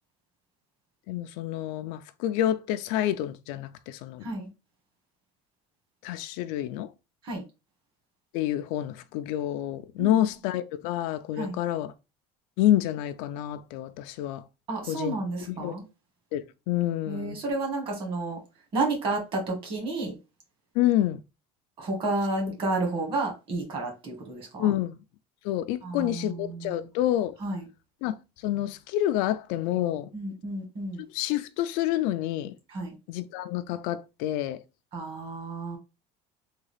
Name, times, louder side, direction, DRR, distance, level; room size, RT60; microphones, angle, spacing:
voice 1, 1.1-4.3 6.0-6.9 8.3-11.9 12.6-14.4 14.9-15.2 15.5-15.7 16.3-17.4 20.7-21.2 24.6-25.0 25.4-27.4 28.0-30.1 31.0-32.6 33.1-34.6, left 12 dB, 70° left, 0.4 m, -28 dB
voice 2, 14.7-15.8 17.1-18.4 18.7-20.2 21.8-24.7 25.8-26.9 27.4-27.7 30.1-31.0 32.7-32.9 34.9-35.8, right 2 dB, 40° right, 1.5 m, -31 dB
3.6 x 2.3 x 3.3 m
cardioid pair, 160°, 14 cm